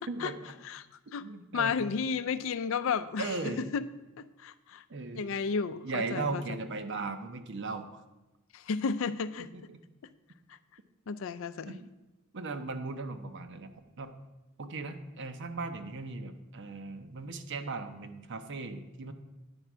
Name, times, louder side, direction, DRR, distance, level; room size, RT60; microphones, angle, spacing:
voice 1, 0.1-0.5 1.2-1.8 3.2-3.6 4.9-5.2 5.8-8.0 9.5-9.8 11.7-11.9 12.3-13.7 14.0-14.2 14.6-19.1, right 3 dB, 60° right, 8 dB, 0.7 m, -37 dB
voice 2, 1.5-3.8 4.2-4.8 5.1-6.4 8.5-9.5 11.1-11.8, left 5 dB, 65° left, 12 dB, 0.4 m, -32 dB
9.8 x 4.5 x 6.0 m, 1.0 s
head